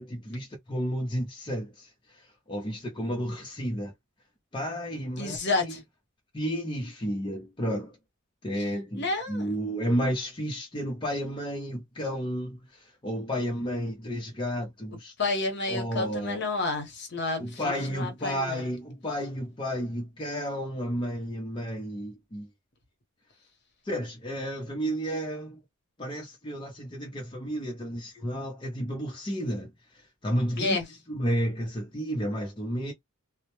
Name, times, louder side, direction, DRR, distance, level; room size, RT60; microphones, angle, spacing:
voice 1, 0.0-3.9 4.5-5.7 6.3-8.0 8.4-15.1 15.7-16.5 17.4-22.5 23.8-25.6 26.0-30.8 31.1-32.9, equal, 20° left, 0.6 m, -32 dB
voice 2, 5.2-5.8 8.9-9.5 15.2-18.6 30.6-30.9, left 3 dB, 55° left, 0.8 m, -30 dB
2.1 x 2.0 x 2.9 m
head